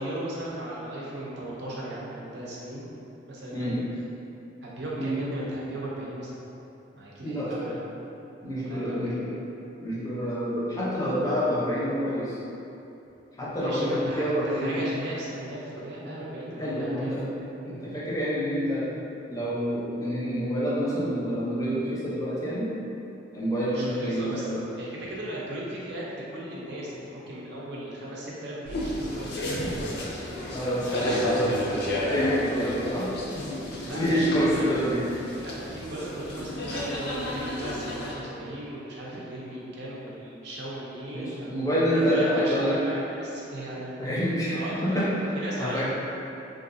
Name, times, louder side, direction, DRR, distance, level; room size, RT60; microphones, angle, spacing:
voice 1, 0.0-2.8 3.3-3.8 4.6-6.4 6.9-7.8 8.6-9.2 13.5-17.3 23.7-29.7 30.8-31.2 31.5-31.9 33.8-34.3 34.6-34.7 35.3-41.5 41.9-43.9 44.5-45.8, right 1 dB, 60° right, -6 dB, 0.7 m, -37 dB
voice 2, 7.2-7.5 8.4-9.3 9.8-12.4 13.4-14.8 16.6-17.2 17.6-18.9 19.3-22.7 23.3-24.5 30.5-31.6 32.0-33.1 33.8-35.1 41.1-42.8 44.0-45.1 45.6-45.8, equal, 20° left, -8 dB, 0.6 m, -27 dB
sound 1, 28.7-38.1, left 1 dB, 60° left, 0.5 m, -32 dB
3.8 x 2.5 x 2.6 m, 2.9 s
head